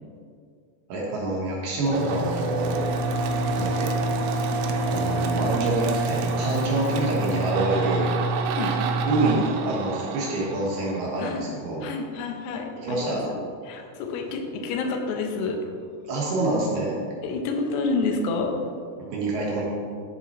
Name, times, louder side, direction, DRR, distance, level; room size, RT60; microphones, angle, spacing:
voice 1, 0.9-2.8 3.6-3.9 4.8-8.1 9.1-11.8 12.8-13.3 16.1-16.9 19.1-19.6, right 2 dB, 65° right, -4 dB, 2.9 m, -26 dB
sound 1, 1.9-11.4, right 3 dB, 85° right, 3.1 m, -27 dB
Bowed string instrument, 2.0-7.5, left 3 dB, 40° right, 1.7 m, -35 dB
voice 2, 11.8-13.4 13.7-15.6 17.2-18.6, left 3 dB, 75° left, 3 dB, 2.6 m, -28 dB
11.0 x 7.2 x 3.1 m, 2.2 s
omnidirectional pair, 5.4 m